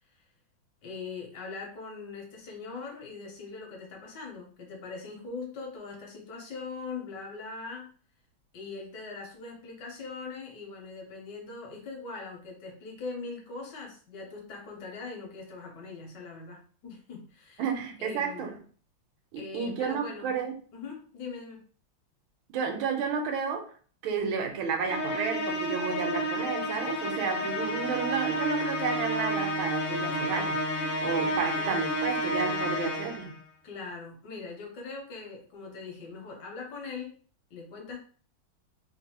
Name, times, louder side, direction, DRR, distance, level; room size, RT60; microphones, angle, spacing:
voice 1, 0.8-7.9 8.5-17.6 18.0-18.6 19.4-20.3 20.7-21.6 31.1-31.8 33.6-37.2 37.5-38.0, left 4 dB, 65° left, 1.3 m, -41 dB
voice 2, 17.6-18.6 19.3-20.5 22.5-23.7 24.0-33.4, right 5 dB, 80° right, 1.5 m, -32 dB
Musical instrument, 24.9-33.3, equal, 85° left, 0.5 m, -30 dB
3.5 x 2.6 x 2.8 m
omnidirectional pair, 2.2 m